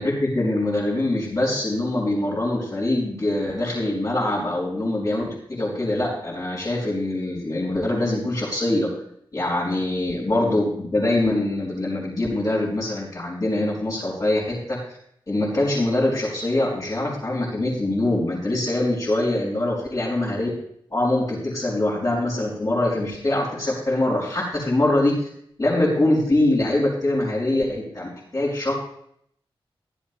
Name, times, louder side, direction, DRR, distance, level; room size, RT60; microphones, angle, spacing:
voice 1, 0.0-8.9 9.3-14.8 15.3-20.5 20.9-25.3 25.6-28.7, left 1 dB, 35° left, -9 dB, 5.1 m, -23 dB
16.0 x 12.0 x 2.3 m, 0.69 s
wide cardioid pair, 170°, 10 cm